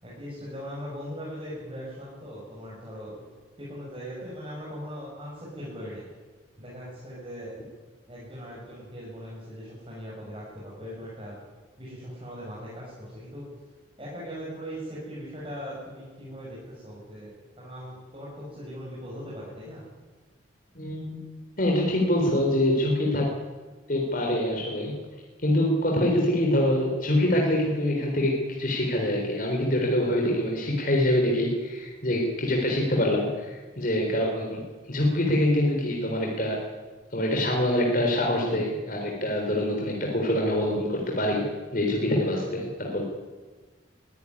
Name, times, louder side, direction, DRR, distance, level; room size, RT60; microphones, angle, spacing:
voice 1, 0.0-3.2 3.6-6.1 6.6-7.6 8.1-11.4 11.8-13.4 14.0-19.8, equal, 25° right, -6 dB, 7.2 m, -39 dB
voice 2, 20.8-21.2 21.6-23.3 23.9-25.0 25.4-36.6 37.1-41.5 41.7-43.0, left 1 dB, 45° left, 0 dB, 3.7 m, -25 dB
22.5 x 15.0 x 9.9 m, 1.3 s
head